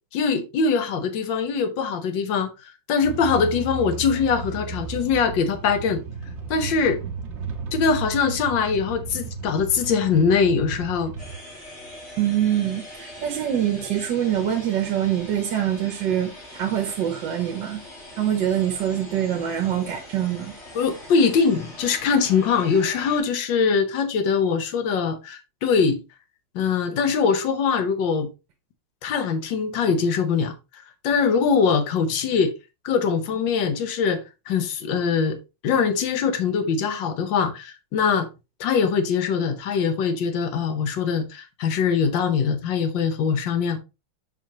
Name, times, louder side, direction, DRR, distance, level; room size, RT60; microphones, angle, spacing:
voice 1, 0.1-6.0 6.5-7.0 7.7-11.1 20.7-26.0 26.5-28.3 29.0-32.5 32.8-34.2 34.5-35.4 35.6-38.3 38.6-43.8, left 5 dB, 80° left, 1.7 m, -22 dB
sound 1, 3.0-11.3, right 4 dB, 45° right, 1.2 m, -34 dB
sound 2, 11.2-23.2, left 1 dB, 35° left, 2.3 m, -42 dB
voice 2, 12.2-17.8 18.1-20.5, right 10 dB, 70° right, 1.5 m, -24 dB
7.4 x 5.0 x 2.9 m
omnidirectional pair, 2.0 m